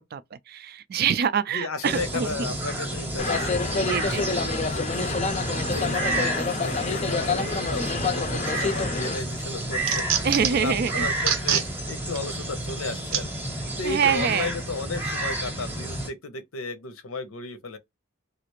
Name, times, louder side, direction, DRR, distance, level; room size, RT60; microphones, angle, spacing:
voice 1, 0.1-2.5 3.7-4.3 10.2-11.1 13.8-14.5, right 7 dB, 45° right, 0.3 m, -25 dB
voice 2, 1.5-17.8, left 3 dB, 90° left, 0.7 m, -35 dB
sound 1, 1.8-16.1, right 1 dB, 10° right, 0.8 m, -30 dB
sound 2, 3.2-9.2, left 4 dB, 30° left, 0.4 m, -28 dB
sound 3, 8.6-9.0 9.4-10.7 11.2-11.7 12.2-12.3 13.1-13.2 14.0-14.2, right 9 dB, 90° right, 0.7 m, -25 dB
3.2 x 2.5 x 2.9 m
head